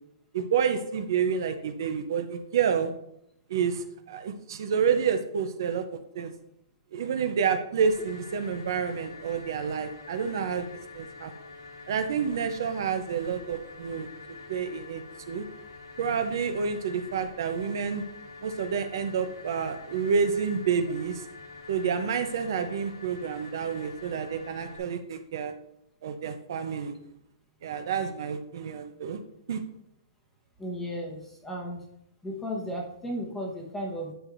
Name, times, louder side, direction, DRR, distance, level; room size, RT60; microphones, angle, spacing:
voice 1, 0.3-2.9 3.5-6.3 6.9-10.7 10.9-11.3 11.9-14.1 14.5-15.5 16.0-18.0 18.4-21.3 21.7-25.5 26.0-27.0 27.6-29.2 29.5-29.6, right 6 dB, 55° right, 8 dB, 0.6 m, -29 dB
sound 1, 7.8-24.8, left 4 dB, 70° left, 2.0 m, -46 dB
voice 2, 30.6-31.8 32.2-34.1, equal, 5° left, 0 dB, 1.0 m, -34 dB
10.5 x 6.0 x 2.6 m, 0.78 s
hypercardioid pair, 170°, 3 cm